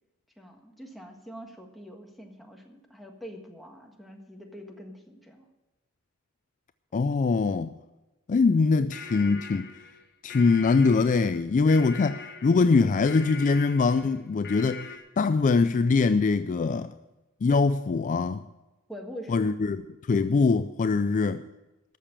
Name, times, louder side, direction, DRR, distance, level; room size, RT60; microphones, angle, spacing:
voice 1, 0.4-5.5 18.9-19.6, equal, ahead, 1.6 m, -44 dB
voice 2, 6.9-7.7 8.3-9.7 10.2-14.9 15.2-16.9 17.4-18.4 19.3-19.8 20.1-21.4, left 4 dB, 35° left, 0.3 m, -23 dB
sound 1, 8.7-15.0, left 5 dB, 55° left, 1.4 m, -42 dB
13.0 x 6.9 x 8.7 m
head